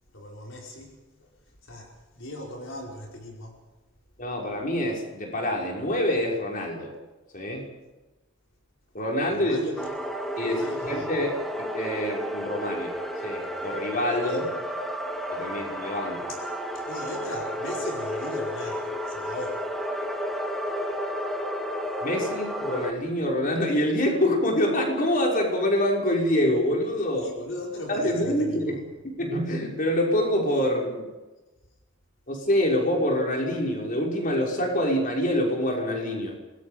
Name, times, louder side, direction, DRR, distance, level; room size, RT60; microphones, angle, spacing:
voice 1, 0.1-1.3 1.6-3.6 9.3-9.9 10.4-11.1 14.2-14.4 16.3-16.4 16.7-19.7 27.2-28.8, left 1 dB, 70° left, -1 dB, 5.0 m, -38 dB
voice 2, 4.2-6.9 7.3-7.7 8.9-9.6 10.4-12.9 13.2-14.6 15.3-16.3 22.0-27.3 27.9-28.8 29.0-31.1 32.3-36.3, left 1 dB, 40° left, 0 dB, 5.8 m, -26 dB
sound 1, 9.8-22.9, equal, ahead, 2.1 m, -32 dB
27.5 x 21.0 x 5.2 m, 1.1 s
head